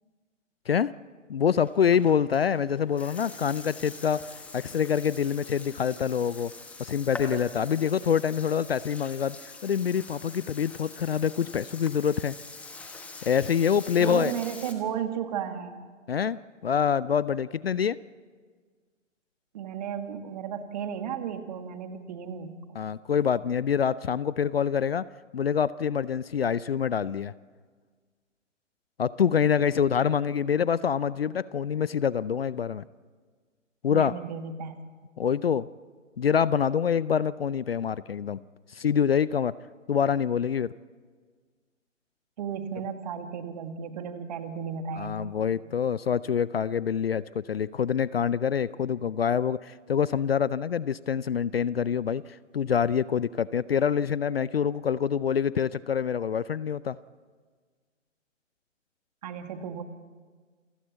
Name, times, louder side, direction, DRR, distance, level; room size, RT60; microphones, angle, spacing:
voice 1, 1.3-4.2 4.5-6.5 6.8-9.4 9.6-12.3 13.2-14.3 16.1-18.0 22.8-25.1 25.3-27.3 29.0-32.8 33.8-34.1 35.2-35.7 36.2-38.4 38.7-39.5 39.9-40.7 45.0-57.0, left 7 dB, 50° left, 19 dB, 0.6 m, -26 dB
Burping eructation, 1.6-14.7, left 2 dB, 5° left, 1.2 m, -43 dB
voice 2, 14.0-15.8 19.5-22.8 33.9-34.8 42.4-45.3 59.2-59.8, right 8 dB, 30° right, 8 dB, 1.9 m, -34 dB
28.0 x 16.0 x 8.1 m, 1.5 s
figure-of-eight pair, 140°, 39 cm